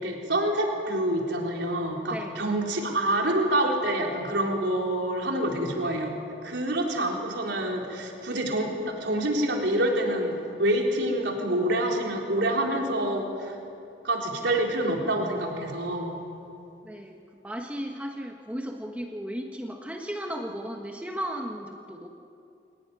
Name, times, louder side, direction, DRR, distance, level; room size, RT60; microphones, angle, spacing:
voice 1, 0.0-6.1 6.4-13.6 14.0-16.1, right 1 dB, 80° right, 0 dB, 4.0 m, -27 dB
voice 2, 2.1-2.5 16.8-22.1, equal, 10° right, 2 dB, 1.2 m, -35 dB
24.0 x 18.0 x 9.8 m, 2.6 s
head